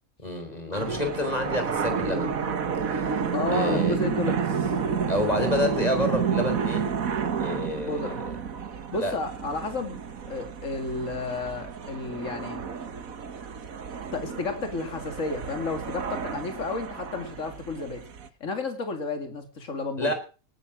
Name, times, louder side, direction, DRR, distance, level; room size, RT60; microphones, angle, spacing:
voice 1, 0.2-2.3 2.9-3.1 3.5-4.0 5.1-6.9 7.4-8.2 8.9-9.1 20.0-20.1, left 2 dB, 25° left, 6 dB, 4.6 m, -28 dB
sound 1, 0.7-18.3, right 6 dB, 75° right, 1.8 m, -30 dB
voice 2, 3.1-4.4 7.8-8.2 8.9-10.0 10.3-12.6 14.1-18.0 18.4-20.1, left 3 dB, 60° left, 6 dB, 2.8 m, -32 dB
18.5 x 10.5 x 6.3 m, 0.37 s
omnidirectional pair, 1.5 m